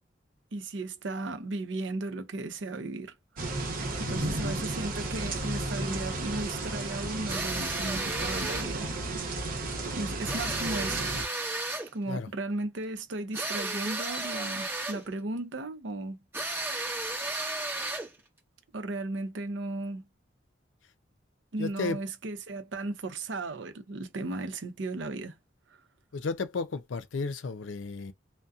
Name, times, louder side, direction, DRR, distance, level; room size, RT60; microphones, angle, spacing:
voice 1, 0.5-3.1 4.0-8.9 9.8-11.2 11.9-16.2 17.8-17.9 18.7-20.1 21.5-25.4 25.7-25.8, right 2 dB, 75° right, 0.6 m, -35 dB
sound 1, 3.4-11.3, right 2 dB, 50° right, 0.9 m, -33 dB
voice 2, 4.0-4.4 12.1-12.3 21.6-22.0 26.1-28.1, left 4 dB, 85° left, 0.5 m, -33 dB
sound 2, 7.3-8.7 10.3-11.9 13.3-15.1 16.3-18.2, right 2 dB, 10° right, 1.0 m, -33 dB
2.7 x 2.1 x 2.4 m
head